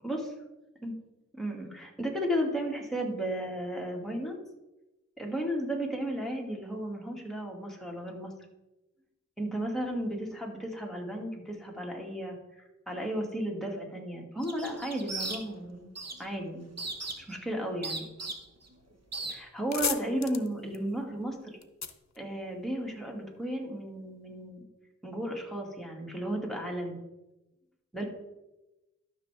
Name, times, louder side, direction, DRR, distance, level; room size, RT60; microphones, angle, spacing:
voice 1, 0.0-0.3 0.8-0.9 1.3-4.4 5.2-8.3 9.4-15.9 16.2-16.7 17.2-18.1 19.3-21.6 22.2-24.7 25.0-27.0 27.9-28.0, right 1 dB, ahead, -1 dB, 2.1 m, -34 dB
sound 1, 14.4-15.7 16.0-16.3 16.8-17.4 17.8-18.7 19.1-19.3, right 3 dB, 55° right, 1.2 m, -37 dB
sound 2, 19.0-19.1 19.4-23.0, left 6 dB, 65° left, 0.7 m, -37 dB
12.5 x 6.2 x 3.4 m, 1.0 s
wide cardioid pair, 40°, 30 cm